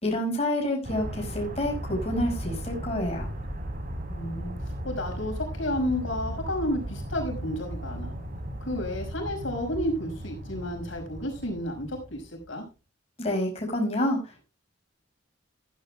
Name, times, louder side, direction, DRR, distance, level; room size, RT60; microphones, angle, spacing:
voice 1, 0.0-3.3 13.2-14.4, left 1 dB, 30° left, 0 dB, 5.6 m, -28 dB
sound 1, 0.8-12.5, right 1 dB, 45° right, 3.9 m, -36 dB
voice 2, 4.1-4.5 4.8-8.1 8.6-12.6, left 1 dB, 65° left, 2 dB, 5.5 m, -31 dB
15.0 x 14.5 x 2.2 m, 0.30 s
head